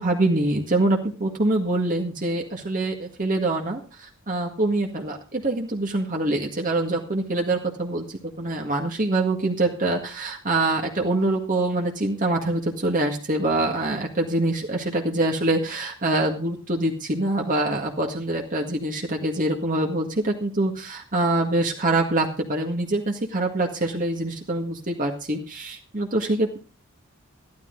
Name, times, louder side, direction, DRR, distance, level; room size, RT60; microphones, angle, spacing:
voice 1, 0.0-8.0 8.4-26.6, right 2 dB, 40° right, 1 dB, 1.8 m, -25 dB
13.5 x 12.5 x 3.9 m, 0.35 s
head